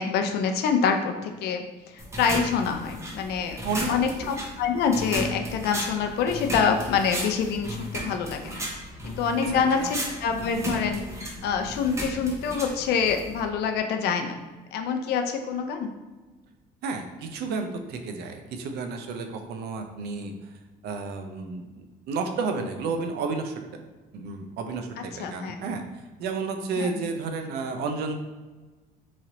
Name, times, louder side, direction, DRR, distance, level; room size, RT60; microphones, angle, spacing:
voice 1, 0.0-3.6 3.9-8.6 9.0-11.0 11.4-14.4 14.7-15.9 25.2-25.6 26.7-27.1, left 6 dB, 75° left, 5 dB, 0.5 m, -26 dB
sound 1, 2.0-13.5, equal, 15° right, 0.8 m, -34 dB
voice 2, 9.5-9.9 16.8-20.3 20.8-23.6 24.1-25.8 26.2-28.1, right 4 dB, 75° right, 5 dB, 0.5 m, -31 dB
3.1 x 2.8 x 3.8 m, 1.2 s
cardioid pair, 110°, 17 cm